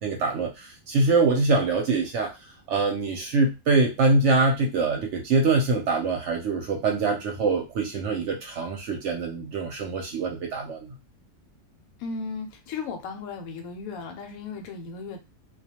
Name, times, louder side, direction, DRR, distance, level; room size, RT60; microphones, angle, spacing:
voice 1, 0.0-2.3 2.7-10.9, right 3 dB, 65° right, 1 dB, 0.8 m, -24 dB
voice 2, 12.0-15.2, left 4 dB, 80° left, 4 dB, 1.0 m, -35 dB
2.3 x 2.2 x 2.8 m, 0.26 s
omnidirectional pair, 1.4 m